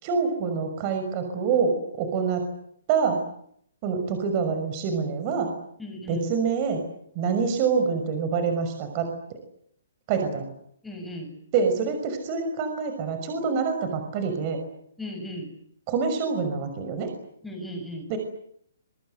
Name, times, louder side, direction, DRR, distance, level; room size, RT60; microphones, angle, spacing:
voice 1, 0.0-2.4 2.9-3.2 3.8-5.5 6.1-6.8 7.2-9.1 10.1-10.5 11.5-14.6 15.9-17.1 18.1-18.2, right 5 dB, 25° right, 6 dB, 5.8 m, -26 dB
voice 2, 5.8-6.3 10.8-11.4 15.0-15.5 17.4-18.1, equal, 5° left, 3 dB, 6.8 m, -36 dB
26.5 x 24.5 x 8.1 m, 0.67 s
hypercardioid pair, 165°, 0 cm